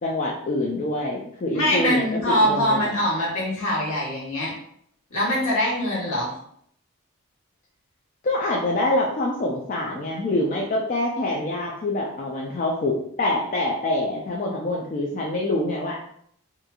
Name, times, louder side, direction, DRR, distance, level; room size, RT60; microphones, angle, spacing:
voice 1, 0.0-2.8 8.2-16.0, left 1 dB, 35° left, -2 dB, 0.3 m, -25 dB
voice 2, 1.5-4.5 5.1-6.3, equal, 70° left, -5 dB, 1.2 m, -23 dB
2.9 x 2.4 x 2.2 m, 0.67 s
head